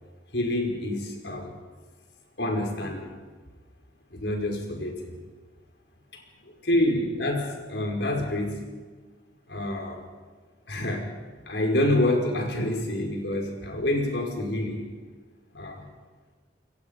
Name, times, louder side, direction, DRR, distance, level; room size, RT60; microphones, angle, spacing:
voice 1, 0.3-1.5 2.4-3.1 4.1-5.2 6.1-8.6 9.5-10.0 10.7-11.1 11.5-14.9 15.5-15.9, left 1 dB, 70° left, 2 dB, 5.2 m, -27 dB
28.5 x 23.0 x 5.4 m, 1.4 s
head